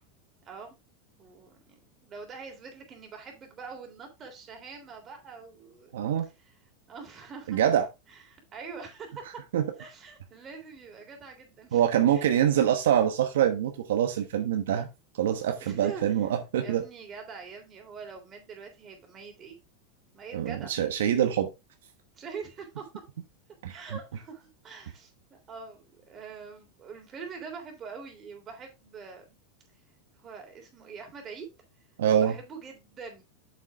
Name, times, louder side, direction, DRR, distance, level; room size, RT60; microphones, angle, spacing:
voice 1, 0.4-0.8 1.2-5.9 6.2-6.5 6.9-7.6 8.1-9.4 9.8-12.4 15.6-16.0 16.6-19.6 20.1-20.7 22.2-22.8 23.7-29.4 30.1-31.5 32.1-33.2, right 5 dB, 30° right, 2 dB, 3.3 m, -44 dB
voice 2, 5.9-6.2 7.5-7.8 9.5-9.6 11.7-14.9 15.2-16.8 20.3-21.5 23.6-23.7 32.0-32.3, right 10 dB, 85° right, 6 dB, 1.1 m, -25 dB
7.3 x 6.7 x 3.5 m, 0.25 s
supercardioid pair, 135°, 0 cm